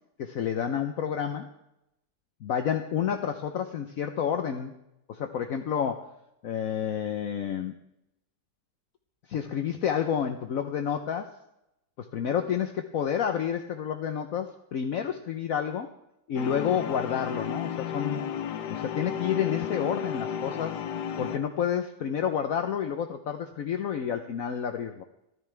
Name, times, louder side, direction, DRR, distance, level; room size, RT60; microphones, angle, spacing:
voice 1, 0.2-1.5 2.4-4.7 5.1-6.1 6.4-7.7 9.3-11.3 12.0-15.9 16.3-18.3 18.7-20.8 21.2-25.0, left 8 dB, 60° left, 6 dB, 1.2 m, -29 dB
sound 1, 16.4-21.4, left 8 dB, 80° left, 1.4 m, -33 dB
26.0 x 11.0 x 3.4 m, 0.85 s
omnidirectional pair, 1.8 m